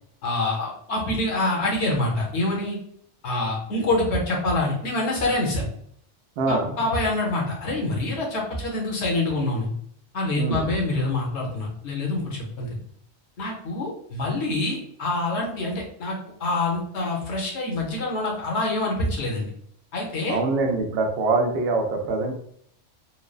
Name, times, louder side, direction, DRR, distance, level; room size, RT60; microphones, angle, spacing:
voice 1, 0.2-2.8 3.2-5.7 6.5-9.7 10.1-12.8 13.4-19.5 19.9-20.4, left 2 dB, 70° left, -2 dB, 1.1 m, -26 dB
voice 2, 6.4-6.7 10.4-10.7 20.3-22.3, right 3 dB, 65° right, 2 dB, 0.7 m, -24 dB
3.1 x 2.0 x 2.3 m, 0.65 s
omnidirectional pair, 1.2 m